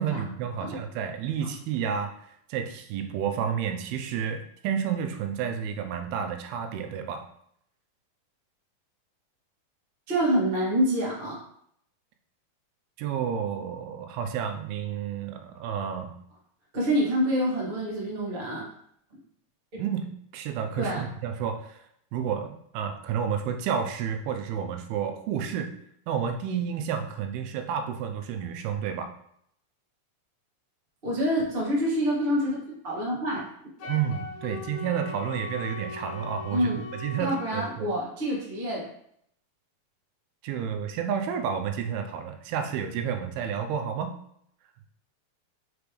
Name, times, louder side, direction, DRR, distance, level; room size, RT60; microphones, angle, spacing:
voice 1, 0.0-2.1 2.5-7.3 13.0-16.1 19.8-21.8 22.1-25.7 26.1-29.1 33.9-36.7 37.0-37.9 40.4-44.1, right 7 dB, 85° right, 6 dB, 2.6 m, -30 dB
voice 2, 10.1-11.4 16.7-18.6 19.7-19.8 20.8-21.0 31.0-33.4 36.5-36.8 37.2-38.9, equal, 25° right, -5 dB, 1.1 m, -27 dB
Wind instrument woodwind instrument, 33.8-37.7, left 3 dB, 70° left, 2.0 m, -39 dB
6.0 x 5.1 x 3.2 m, 0.70 s
omnidirectional pair, 4.4 m